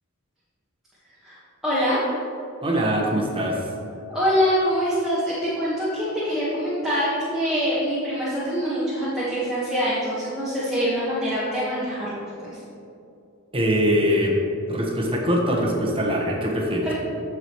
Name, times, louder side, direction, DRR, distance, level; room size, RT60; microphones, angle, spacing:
voice 1, 1.6-2.0 4.1-12.6 16.8-16.9, equal, ahead, -11 dB, 1.5 m, -24 dB
voice 2, 2.6-3.6 13.5-14.3 14.7-16.9, equal, 25° right, -2 dB, 1.3 m, -22 dB
14.5 x 5.0 x 3.2 m, 2.7 s
head